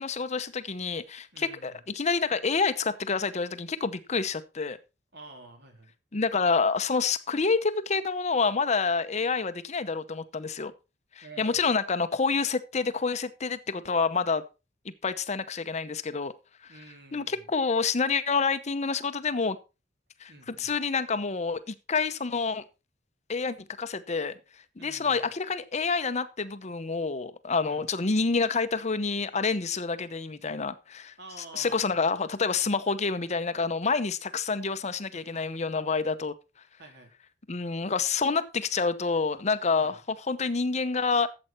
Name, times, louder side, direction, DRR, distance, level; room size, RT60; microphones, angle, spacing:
voice 1, 0.0-4.8 6.1-10.7 11.2-14.4 15.0-16.3 17.1-19.6 20.2-22.6 23.3-24.3 24.8-31.1 31.5-36.3 37.5-41.3, left 4 dB, 40° left, 0.8 m, -28 dB
voice 2, 1.3-1.9 5.1-5.9 11.2-11.7 16.7-17.5 20.3-20.8 24.8-25.3 27.7-27.9 31.2-32.0 35.1-35.8 36.8-37.1 39.7-40.0, right 2 dB, 65° right, 3.4 m, -49 dB
13.0 x 7.8 x 4.4 m
head